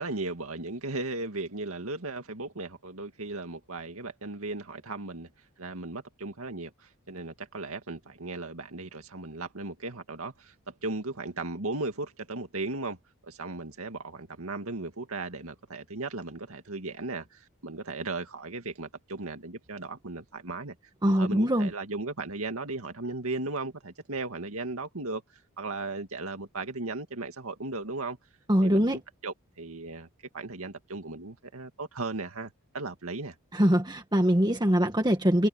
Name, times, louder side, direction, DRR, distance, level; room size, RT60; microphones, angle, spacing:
voice 1, 0.0-5.3 5.6-13.0 13.2-20.8 21.0-25.2 25.6-28.2 28.6-30.1 30.3-33.4, right 3 dB, 75° right, 2.2 m, -36 dB
voice 2, 21.0-21.7 28.5-29.0 33.5-35.5, equal, 20° right, 1.6 m, -23 dB
head